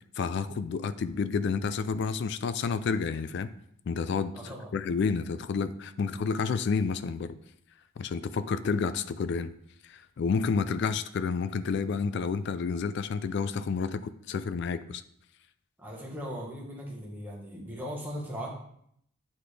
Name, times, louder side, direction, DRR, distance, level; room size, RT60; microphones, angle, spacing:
voice 1, 0.2-3.5 3.9-7.4 8.0-9.5 9.8-15.0, left 5 dB, 55° left, 13 dB, 0.3 m, -30 dB
voice 2, 4.3-4.7 15.8-18.5, equal, 10° right, -4 dB, 1.3 m, -38 dB
8.5 x 3.9 x 3.3 m, 0.70 s
head